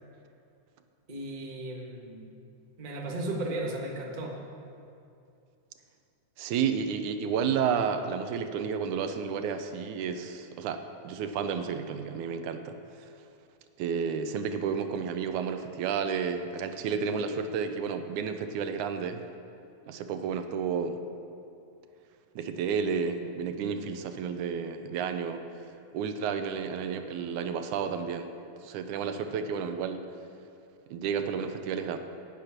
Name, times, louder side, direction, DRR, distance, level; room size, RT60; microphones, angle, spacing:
voice 1, 1.1-2.3 2.8-4.4, right 1 dB, 30° right, -1 dB, 0.7 m, -35 dB
voice 2, 6.4-13.1 13.8-19.2 19.9-21.0 22.4-25.4 25.9-28.3 28.6-30.0 30.9-32.0, right 6 dB, 85° right, 8 dB, 2.2 m, -31 dB
17.0 x 8.4 x 5.9 m, 2.5 s
omnidirectional pair, 3.5 m